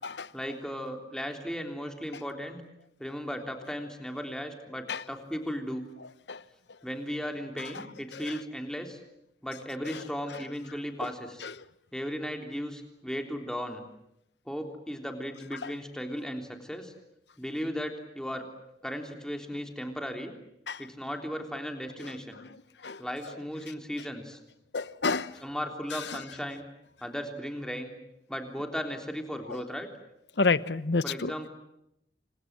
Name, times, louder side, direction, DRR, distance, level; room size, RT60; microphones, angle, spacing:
voice 1, 0.3-2.6 3.0-5.9 6.8-9.0 9.4-11.4 11.9-13.8 14.5-16.9 17.4-18.5 18.8-20.3 20.8-22.4 23.0-24.4 25.4-26.7 27.0-27.9 28.3-29.9 31.0-31.5, equal, 5° left, 3.5 m, -36 dB
voice 2, 22.0-22.5 22.8-23.0 24.7-25.4 25.9-26.2 29.5-29.6 30.4-31.3, left 4 dB, 75° left, 1.0 m, -30 dB
29.0 x 26.0 x 7.5 m
head